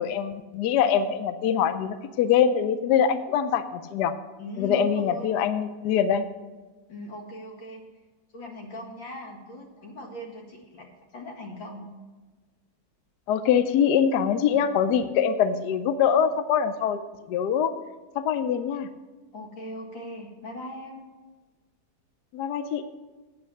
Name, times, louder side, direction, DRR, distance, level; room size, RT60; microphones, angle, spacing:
voice 1, 0.0-4.1 4.6-6.3 13.3-17.0 17.3-17.7 18.1-18.9 22.3-22.8, left 8 dB, 70° left, 11 dB, 1.1 m, -23 dB
voice 2, 4.4-5.4 6.9-7.8 8.3-11.9 19.3-21.0, left 1 dB, 90° left, 1 dB, 2.6 m, -39 dB
8.3 x 8.1 x 6.4 m, 1.3 s
omnidirectional pair, 2.0 m